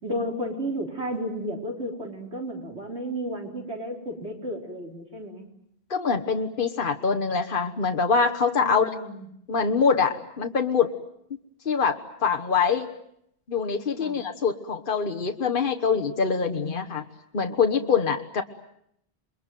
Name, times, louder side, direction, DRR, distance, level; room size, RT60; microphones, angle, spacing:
voice 1, 0.0-5.4 8.6-9.3 14.0-14.2, equal, 85° right, 2 dB, 4.5 m, -33 dB
voice 2, 5.9-8.9 9.5-10.9 11.6-12.9 13.5-17.0 17.3-18.4, left 5 dB, 55° left, 5 dB, 1.5 m, -24 dB
29.0 x 22.0 x 9.3 m, 0.75 s
omnidirectional pair, 1.1 m